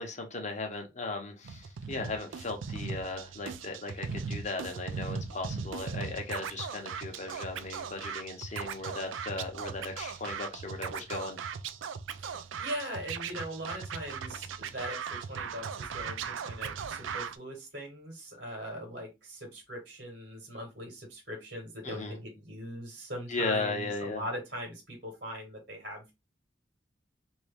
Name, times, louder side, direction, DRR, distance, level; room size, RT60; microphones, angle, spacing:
voice 1, 0.0-11.4 21.8-22.2 23.3-24.2, left 3 dB, 40° left, 0.9 m, -37 dB
Scratching (performance technique), 1.4-17.4, right 6 dB, 85° right, 0.4 m, -38 dB
voice 2, 12.2-26.1, equal, 60° right, 1.3 m, -41 dB
2.9 x 2.7 x 3.4 m
head